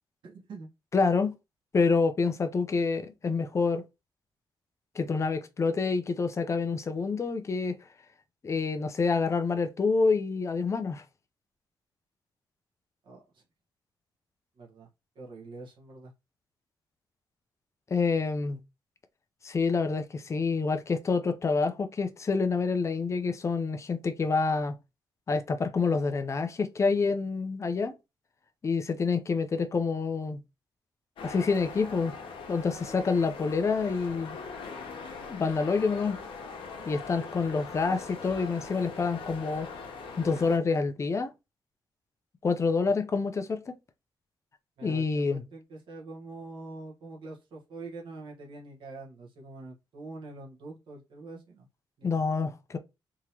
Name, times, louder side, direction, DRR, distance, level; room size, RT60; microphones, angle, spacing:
voice 1, 0.2-0.7 13.0-13.4 14.6-14.9 15.1-16.1 42.7-42.9 44.8-51.7 52.0-52.2, right 3 dB, 70° right, 1.3 m, -45 dB
voice 2, 0.9-1.4 1.7-3.8 5.0-7.8 8.4-11.0 17.9-18.6 19.4-24.8 25.3-27.9 28.6-30.4 31.2-32.1 32.5-34.4 35.3-36.2 36.9-39.7 40.2-41.3 42.4-43.6 44.8-45.4 52.0-52.8, left 4 dB, 35° left, 0.6 m, -27 dB
sound 1, 31.2-40.6, left 4 dB, 85° left, 0.9 m, -41 dB
3.7 x 2.9 x 2.9 m
cardioid pair, 100°, 9 cm